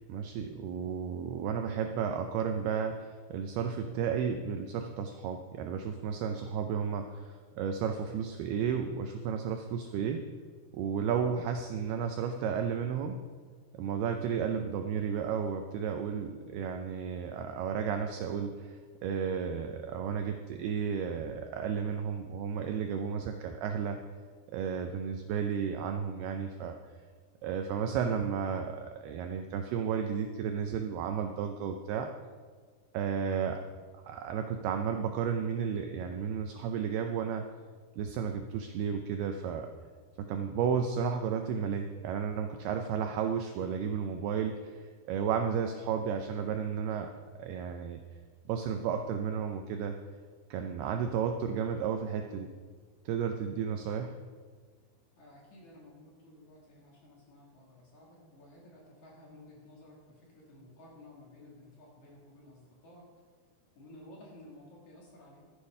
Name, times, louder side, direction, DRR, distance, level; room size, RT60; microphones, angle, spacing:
voice 1, 0.1-10.2 10.7-13.2 13.7-24.0 24.5-26.7 27.4-32.1 32.9-33.6 34.1-37.5 38.0-39.7 40.2-47.1 47.4-48.0 48.5-50.0 50.5-52.5 53.1-54.1, right 7 dB, 90° right, 5 dB, 2.2 m, -33 dB
voice 2, 55.2-63.1 63.8-65.4, left 1 dB, 50° left, -3 dB, 2.8 m, -54 dB
13.0 x 8.4 x 5.4 m, 1.5 s
omnidirectional pair, 5.4 m